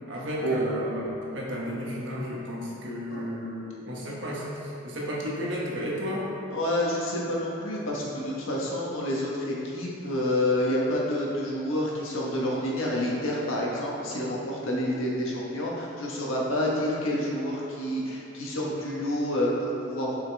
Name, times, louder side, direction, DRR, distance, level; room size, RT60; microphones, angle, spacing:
voice 1, 0.1-6.3, equal, 65° right, -4 dB, 1.4 m, -33 dB
voice 2, 6.5-20.2, left 1 dB, 90° left, -4 dB, 1.4 m, -28 dB
7.5 x 5.5 x 3.4 m, 2.7 s
head